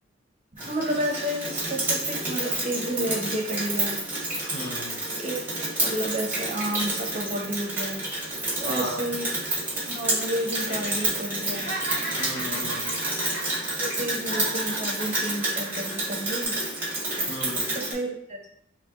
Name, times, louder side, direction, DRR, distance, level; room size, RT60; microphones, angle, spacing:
Rain, 0.6-17.9, right 2 dB, 10° right, 1.3 m, -29 dB
voice 1, 0.6-4.0 5.2-8.1 8.6-9.3 9.9-11.7 13.8-16.6 17.7-18.5, right 1 dB, 35° right, 0 dB, 0.8 m, -31 dB
voice 2, 4.5-5.0 8.6-9.1 12.2-13.0 17.3-17.7, equal, 55° left, -6 dB, 1.3 m, -35 dB
Laughter, 10.6-11.1 11.4-14.1 14.3-15.9 16.3-16.5, right 1 dB, 75° left, 1.6 m, -36 dB
3.3 x 3.1 x 3.6 m, 0.68 s
head